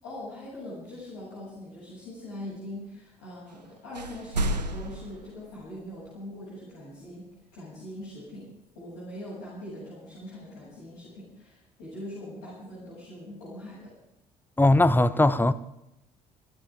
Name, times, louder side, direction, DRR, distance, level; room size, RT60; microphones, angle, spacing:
voice 1, 0.0-7.2 7.5-8.5 8.7-13.9, left 1 dB, 70° left, 7.4 m, -42 dB
sound 1, 3.5-3.7 3.9-6.0, right 1 dB, 90° right, 0.8 m, -32 dB
voice 2, 14.6-15.5, left 2 dB, 10° left, 1.0 m, -19 dB
28.0 x 13.0 x 3.7 m
figure-of-eight pair, 50°, 21 cm